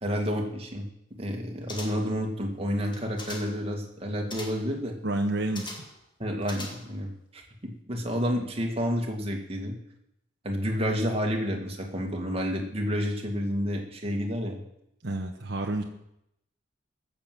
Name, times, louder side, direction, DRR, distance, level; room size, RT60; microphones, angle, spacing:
voice 1, 0.0-0.9 1.2-5.0 6.2-9.8 10.4-14.6, equal, 30° right, 1 dB, 2.2 m, -30 dB
sound 1, 1.7-2.2 2.8-3.6 4.3-4.7 5.6-6.0 6.4-7.1 7.4-7.5, left 2 dB, 25° left, 1.9 m, -41 dB
voice 2, 5.0-5.7 15.0-15.8, right 2 dB, 60° right, 1 dB, 1.2 m, -29 dB
15.5 x 7.1 x 7.6 m, 0.81 s
head